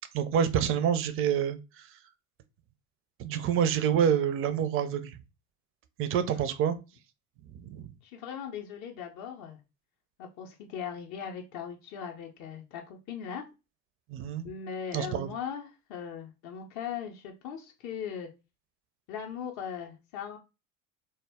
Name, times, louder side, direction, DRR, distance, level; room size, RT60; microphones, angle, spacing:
voice 1, 0.1-2.0 3.2-5.2 6.0-6.8 7.5-7.9 14.1-14.4 14.9-15.3, right 8 dB, 35° right, 0.4 m, -27 dB
voice 2, 8.0-9.6 10.2-13.5 14.4-18.3 19.1-20.4, left 7 dB, 45° left, 0.5 m, -39 dB
2.1 x 2.1 x 3.3 m
hypercardioid pair, 70°, 42 cm